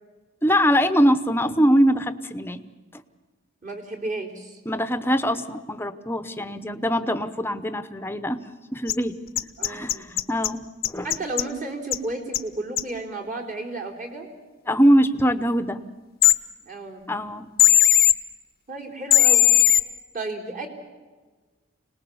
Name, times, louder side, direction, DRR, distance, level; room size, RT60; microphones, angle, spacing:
voice 1, 0.4-2.6 2.9-3.0 4.7-8.4 8.7-9.2 9.6-11.1 14.7-15.8 17.1-17.5, equal, 10° left, 11 dB, 0.8 m, -22 dB
voice 2, 3.6-4.6 9.6-10.1 11.0-14.3 16.6-17.1 18.7-19.5 20.1-20.7, right 2 dB, 40° right, 1 dB, 3.7 m, -32 dB
sound 1, 8.9-9.0 9.4-10.5 10.8-11.4 11.9-12.0 12.3-12.4 12.8-12.9 16.2-16.3 17.6-18.1 19.1-19.8, left 12 dB, 50° left, 0.7 m, -16 dB
26.0 x 19.5 x 7.1 m, 1.4 s
head